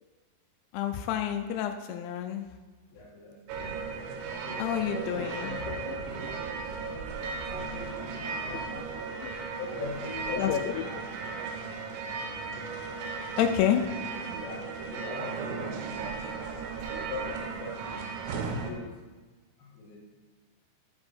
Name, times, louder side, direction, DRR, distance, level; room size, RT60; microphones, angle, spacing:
voice 1, 0.7-2.5 4.6-6.0 7.6-7.7 8.5-8.6 8.9-9.3 10.3-10.9 13.4-13.9, left 10 dB, 85° left, 5 dB, 2.6 m, -29 dB
voice 2, 2.9-3.7 4.2-5.7 6.2-8.7 9.6-10.9 14.4-16.0 17.1-18.0 18.6-19.0 19.6-20.0, left 2 dB, 55° left, -7 dB, 3.0 m, -41 dB
sound 1, 3.5-18.7, right 5 dB, 85° right, 3.1 m, -36 dB
12.5 x 4.3 x 4.4 m, 1.3 s
omnidirectional pair, 5.6 m